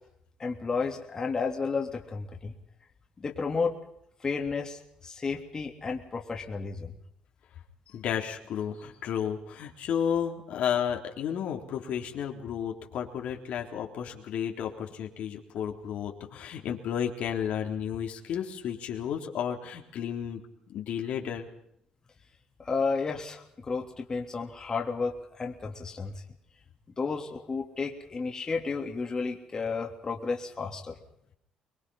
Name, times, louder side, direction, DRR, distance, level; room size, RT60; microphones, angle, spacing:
voice 1, 0.4-2.5 3.2-3.8 4.2-7.0 22.6-26.1 27.0-30.9, left 4 dB, 30° left, 2 dB, 3.3 m, -32 dB
voice 2, 7.9-20.4 20.7-21.5, left 8 dB, 70° left, 2 dB, 3.7 m, -32 dB
25.0 x 21.5 x 5.7 m, 0.74 s
cardioid pair, 100°, 2 cm